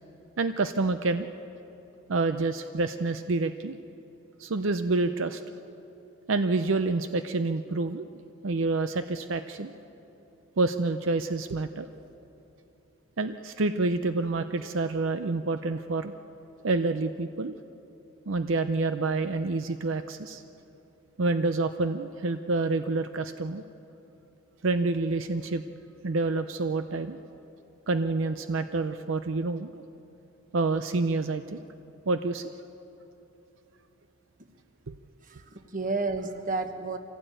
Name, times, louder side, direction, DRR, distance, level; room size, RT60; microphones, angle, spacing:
voice 1, 0.4-1.3 2.1-3.7 4.4-5.4 6.3-8.1 8.4-9.7 10.6-11.9 13.2-16.1 16.6-17.5 18.3-20.4 21.2-23.6 24.6-25.6 26.0-27.2 27.9-29.7 30.5-31.6 32.1-32.5 34.9-35.0, right 3 dB, 70° right, 9 dB, 0.6 m, -28 dB
voice 2, 35.2-37.0, right 3 dB, 40° right, 7 dB, 1.3 m, -31 dB
25.0 x 16.5 x 9.1 m, 3.0 s
head